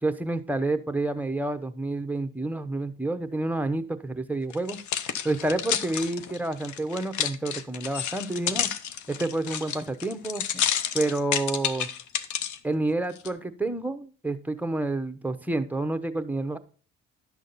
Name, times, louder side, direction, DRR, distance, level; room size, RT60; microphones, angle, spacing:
voice 1, 0.0-4.8 5.2-8.7 9.1-10.4 10.9-11.9 12.6-16.6, right 2 dB, 5° right, 9 dB, 0.9 m, -29 dB
sound 1, 4.5-12.6 13.2-13.3, left 9 dB, 75° left, 0.9 m, -30 dB
11.5 x 6.3 x 4.1 m, 0.40 s
cardioid pair, 90°, 30 cm